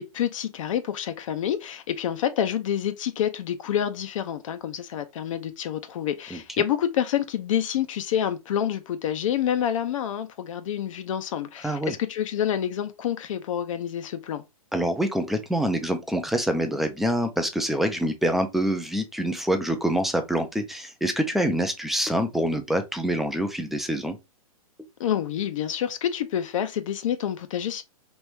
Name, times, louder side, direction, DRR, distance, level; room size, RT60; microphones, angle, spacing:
voice 1, 0.0-14.4 25.0-27.8, left 10 dB, 60° left, 0.5 m, -28 dB
voice 2, 11.6-11.9 14.7-24.2, right 1 dB, ahead, 0.3 m, -26 dB
3.1 x 2.6 x 3.2 m
hypercardioid pair, 140°, 19 cm